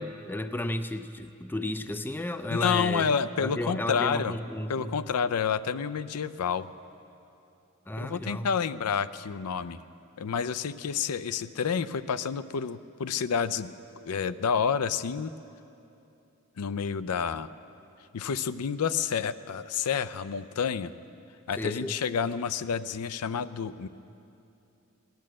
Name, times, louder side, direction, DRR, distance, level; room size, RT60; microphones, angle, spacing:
voice 1, 0.0-3.1 3.4-5.0 7.9-8.5 21.6-22.0, left 1 dB, 10° left, 10 dB, 0.4 m, -33 dB
voice 2, 2.5-4.4 4.7-6.7 8.0-9.8 10.2-13.7 14.0-15.3 16.6-17.5 18.1-20.9 21.5-23.9, left 6 dB, 85° left, 14 dB, 0.5 m, -29 dB
18.0 x 10.5 x 7.6 m, 2.8 s
head